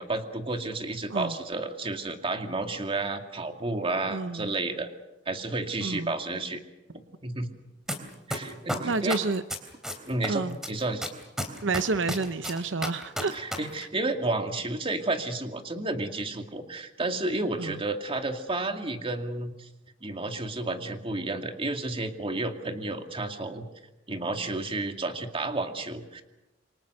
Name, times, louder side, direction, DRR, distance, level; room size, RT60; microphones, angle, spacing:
voice 1, 0.0-4.9 5.3-6.6 7.2-7.5 8.3-9.2 10.0-11.0 13.3-19.7 20.0-23.6 24.1-26.2, right 2 dB, 30° right, 5 dB, 2.3 m, -31 dB
voice 2, 4.1-4.5 5.8-6.1 8.8-9.4 10.3-10.6 11.6-13.6 17.6-17.8, right 3 dB, 75° right, 11 dB, 0.8 m, -29 dB
sound 1, 7.9-8.0 8.3-10.3 10.6-13.6 13.8-13.9, equal, 5° right, 3.5 m, -30 dB
28.0 x 24.0 x 6.6 m, 0.98 s
head